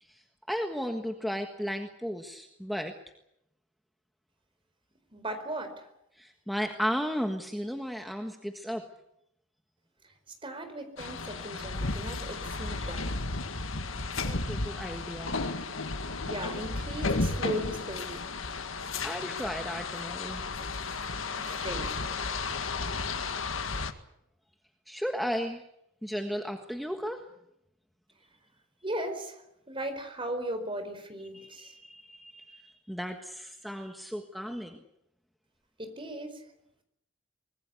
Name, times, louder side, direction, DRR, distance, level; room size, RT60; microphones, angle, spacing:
voice 1, 0.0-2.9 6.1-8.9 11.3-11.4 12.8-13.0 14.2-15.4 19.0-20.4 24.9-25.6 26.0-27.2 31.3-34.8, equal, ahead, 4 dB, 1.5 m, -35 dB
voice 2, 5.1-5.9 10.4-13.2 16.2-18.3 21.5-22.1 28.8-29.4 29.7-31.7 35.8-36.4, right 1 dB, 25° right, 8 dB, 4.5 m, -37 dB
sound 1, 11.0-23.9, left 3 dB, 90° left, 1.9 m, -33 dB
24.0 x 20.5 x 8.3 m, 0.80 s
head